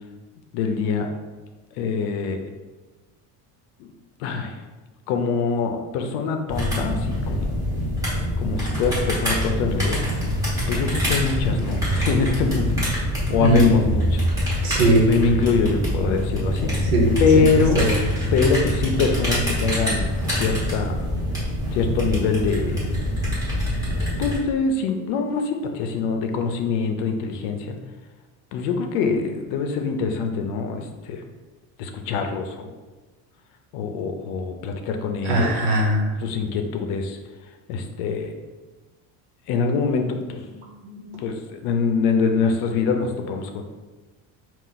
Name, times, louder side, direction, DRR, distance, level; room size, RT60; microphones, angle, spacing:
voice 1, 0.5-1.1 1.8-2.4 3.8-3.9 4.2-4.6 5.1-7.5 8.4-10.0 10.7-13.0 13.3-14.2 15.0-16.7 17.2-17.8 18.3-20.1 20.3-21.0 21.7-22.8 24.2-27.8 28.5-31.2 31.8-32.7 33.7-35.5 36.2-37.2 37.7-38.3 39.5-40.4 41.2-43.6, left 5 dB, 65° left, 5 dB, 0.6 m, -24 dB
sound 1, 6.5-24.4, equal, 10° right, 0.9 m, -25 dB
voice 2, 13.4-13.7 14.6-15.1 16.9-17.1 17.7-17.9 35.2-36.0 40.8-41.2, right 1 dB, 90° right, 0 dB, 1.2 m, -19 dB
4.6 x 2.5 x 3.9 m, 1.2 s
cardioid pair, 180°, 45 cm